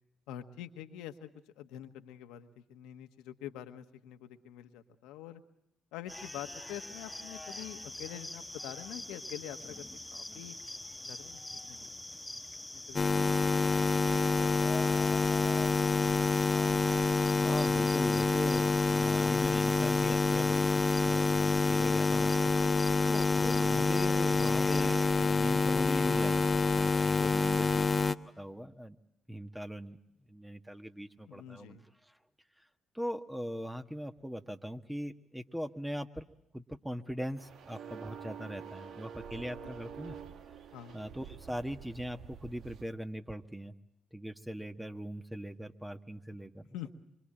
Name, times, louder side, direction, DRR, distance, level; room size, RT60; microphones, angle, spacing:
voice 1, 0.3-1.3 1.6-5.4 5.9-10.6 11.0-12.0 12.7-13.8 31.3-31.8 40.7-41.0 46.7-46.9, left 11 dB, 80° left, 7 dB, 1.4 m, -46 dB
sound 1, 6.1-25.1, left 1 dB, 10° left, 1.2 m, -44 dB
sound 2, 12.9-28.1, left 4 dB, 30° left, 1.0 m, -27 dB
voice 2, 17.4-22.3 23.1-27.9 28.4-29.0 29.3-30.0 30.3-32.1 32.9-36.3 36.5-40.1 40.9-43.7 44.1-46.6, equal, 5° right, 7 dB, 1.5 m, -40 dB
sound 3, 37.4-42.8, right 7 dB, 65° right, 1.3 m, -47 dB
25.0 x 25.0 x 8.9 m, 0.81 s
hypercardioid pair, 50°, 0 cm